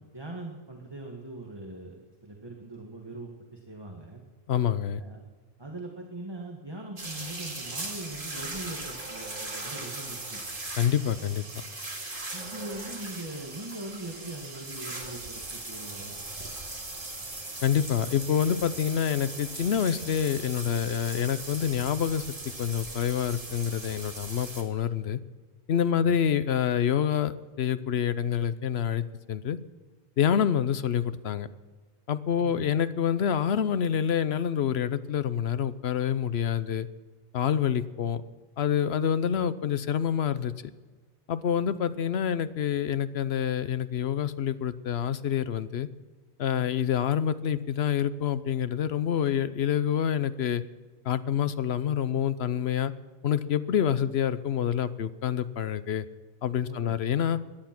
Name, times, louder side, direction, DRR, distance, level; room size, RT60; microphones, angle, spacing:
voice 1, 0.0-4.2 5.0-5.2 5.6-10.4 12.3-16.1 26.0-26.1 32.4-32.7 46.5-46.7 56.7-57.0, right 2 dB, 25° right, 1 dB, 1.6 m, -41 dB
voice 2, 4.5-5.0 10.8-11.4 17.6-22.3 22.6-25.2 25.7-29.6 30.2-31.5 32.1-36.9 37.3-38.2 38.6-40.5 41.3-45.9 46.4-50.6 51.1-52.9 53.2-56.1 56.4-57.4, left 8 dB, 75° left, 14 dB, 1.0 m, -27 dB
sound 1, 7.0-24.6, right 2 dB, 55° right, 2.4 m, -39 dB
17.5 x 11.5 x 6.0 m, 1.4 s
omnidirectional pair, 1.1 m